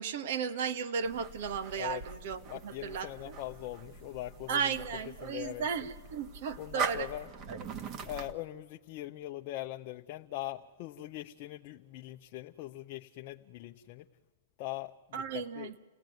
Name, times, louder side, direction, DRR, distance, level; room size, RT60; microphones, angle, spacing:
voice 1, 0.0-3.4 4.5-7.1 7.5-7.6 15.1-15.7, right 6 dB, 60° right, 11 dB, 1.8 m, -35 dB
sound 1, 1.0-8.4, right 6 dB, 30° right, 1.9 m, -42 dB
voice 2, 2.5-4.8 5.2-5.7 6.6-7.3 8.0-14.1 14.6-15.7, left 15 dB, 45° left, 5 dB, 0.8 m, -41 dB
29.5 x 18.0 x 9.3 m, 1.4 s
hypercardioid pair, 135°, 0 cm